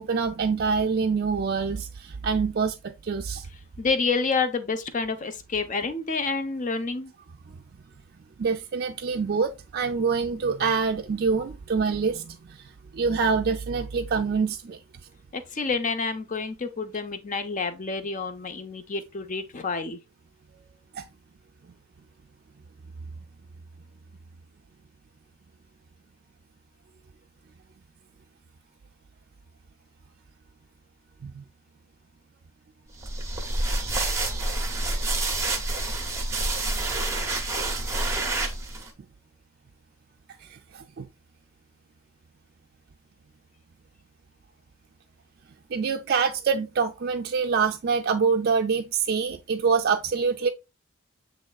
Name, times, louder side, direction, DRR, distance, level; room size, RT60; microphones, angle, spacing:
voice 1, 0.0-3.5 7.5-7.6 8.4-14.8 20.9-21.0 31.2-31.4 40.4-41.1 45.7-50.5, right 5 dB, 45° right, 0.4 m, -26 dB
voice 2, 3.8-7.1 15.3-20.0, left 4 dB, 35° left, 0.6 m, -28 dB
sound 1, 33.0-38.9, right 2 dB, 15° right, 0.7 m, -28 dB
7.4 x 3.1 x 2.2 m
head